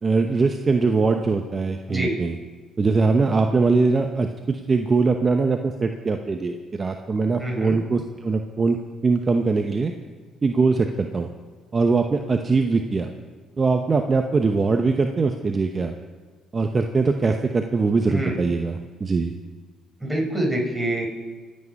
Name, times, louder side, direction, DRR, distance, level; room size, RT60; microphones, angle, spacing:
voice 1, 0.0-2.4 2.8-8.8 9.0-9.9 10.4-11.3 11.7-13.1 13.6-15.9 16.5-19.3, right 4 dB, 35° right, 5 dB, 0.9 m, -22 dB
voice 2, 7.4-7.8 18.1-18.4 20.0-21.1, right 1 dB, 5° right, -1 dB, 4.9 m, -25 dB
26.0 x 8.8 x 5.4 m, 1.5 s
supercardioid pair, 75°, 0 cm